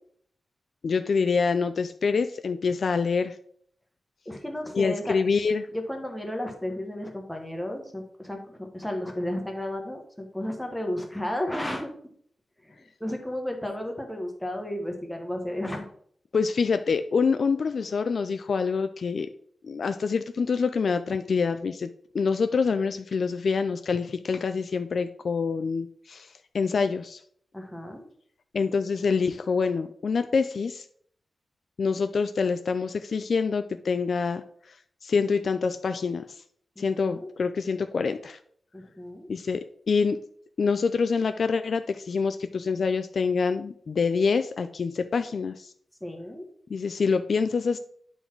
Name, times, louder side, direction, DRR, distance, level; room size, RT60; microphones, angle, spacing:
voice 1, 0.8-3.4 4.7-5.7 16.3-19.3 19.6-21.9 22.1-26.3 26.5-27.2 28.5-30.9 31.8-34.4 35.0-36.2 36.8-38.4 39.3-40.2 40.6-45.7 46.7-47.8, left 5 dB, 55° left, 9 dB, 0.3 m, -26 dB
voice 2, 4.2-5.2 5.7-11.9 12.6-15.9 25.5-25.6 27.5-28.0 36.8-37.3 38.7-39.3 46.0-46.4, left 1 dB, 5° left, 2 dB, 1.2 m, -33 dB
9.1 x 3.9 x 4.5 m, 0.62 s
wide cardioid pair, 140°, 0 cm